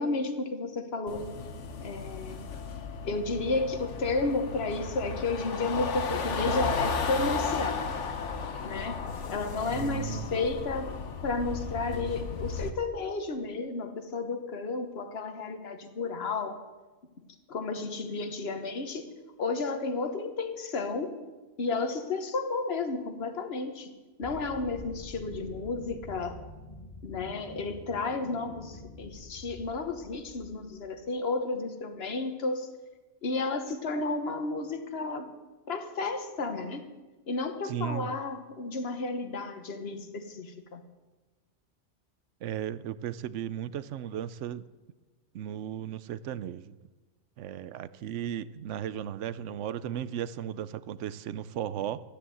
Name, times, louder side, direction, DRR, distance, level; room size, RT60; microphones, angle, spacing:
voice 1, 0.0-1.3 1.8-2.4 3.0-7.8 8.6-16.6 17.5-19.1 19.4-21.2 21.6-23.9 24.2-26.4 27.0-32.7 33.2-35.3 35.7-36.9 37.3-40.8, left 3 dB, 60° left, 8 dB, 1.4 m, -32 dB
sound 1, 1.1-12.7, left 5 dB, 85° left, 1.4 m, -34 dB
voice 2, 9.7-10.4 37.6-38.1 42.4-44.6 45.3-46.8 47.4-52.0, right 10 dB, 90° right, 16 dB, 0.9 m, -35 dB
sound 2, 24.2-31.0, left 2 dB, 40° left, 1.1 m, -47 dB
13.5 x 10.0 x 7.8 m, 1.2 s
omnidirectional pair, 1.2 m